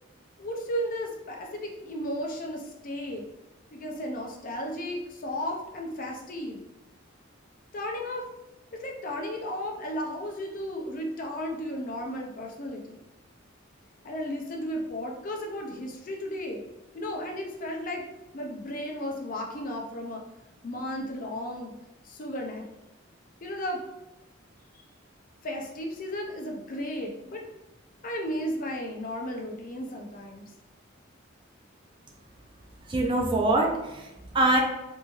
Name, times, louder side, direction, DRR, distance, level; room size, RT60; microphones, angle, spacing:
voice 1, 0.4-3.3 3.7-6.6 7.7-8.3 8.8-13.0 14.0-16.6 16.9-18.0 18.3-20.2 20.6-21.7 22.0-22.7 23.4-23.8 25.4-27.4 28.0-30.4, equal, 45° left, 1 dB, 0.5 m, -34 dB
voice 2, 32.9-34.6, right 2 dB, 25° right, 0 dB, 0.4 m, -24 dB
3.0 x 2.7 x 2.3 m, 0.97 s
head